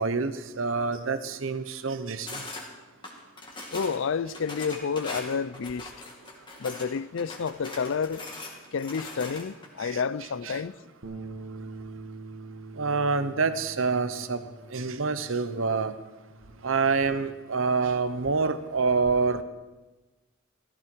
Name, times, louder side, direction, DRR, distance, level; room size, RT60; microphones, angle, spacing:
voice 1, 0.0-2.4 9.8-10.0 12.8-14.4 14.7-15.9 16.6-19.4, right 4 dB, 65° right, 0.9 m, -27 dB
sound 1, 2.3-2.7 3.0-4.0 4.3-6.9 7.2-9.7, left 2 dB, 25° left, 2.2 m, -40 dB
voice 2, 3.7-5.9 6.6-8.2 8.7-10.7, left 6 dB, 65° left, 0.5 m, -30 dB
sound 2, 11.0-17.3, right 3 dB, 85° right, 1.4 m, -44 dB
14.5 x 14.5 x 4.6 m
head